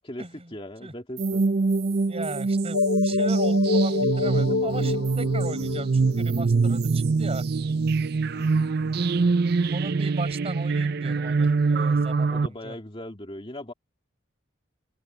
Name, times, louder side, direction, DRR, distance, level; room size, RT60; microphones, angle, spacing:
voice 1, 0.0-1.4 8.3-8.7 12.3-13.7, left 1 dB, 25° left, 2.3 m, -39 dB
sound 1, 1.2-12.5, right 4 dB, 50° right, 0.5 m, -24 dB
voice 2, 2.1-7.4 9.7-12.7, right 2 dB, 30° right, 5.5 m, -37 dB
sound 2, 2.7-6.6, left 4 dB, 80° left, 1.2 m, -27 dB
open air
head